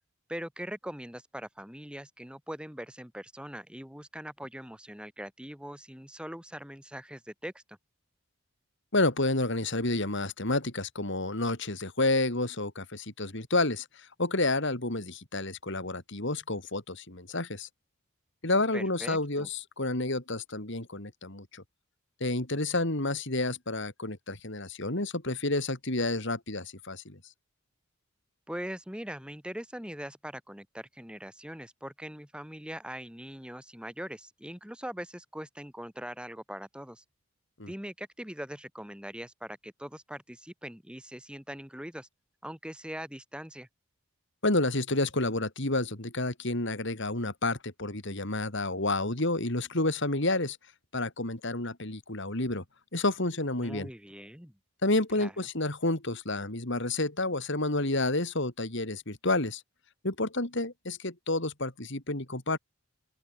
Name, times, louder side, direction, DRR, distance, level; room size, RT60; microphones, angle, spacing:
voice 1, 0.3-7.8 18.7-19.5 28.5-37.0 37.7-42.1 42.4-43.7 53.6-54.5 55.2-55.3, equal, 5° right, 3.9 m, -41 dB
voice 2, 8.9-17.7 18.4-21.6 22.2-27.2 37.6-37.7 44.4-50.6 50.9-52.6 52.9-53.9 54.8-59.6 60.0-62.6, left 2 dB, 55° left, 3.4 m, -30 dB
open air
head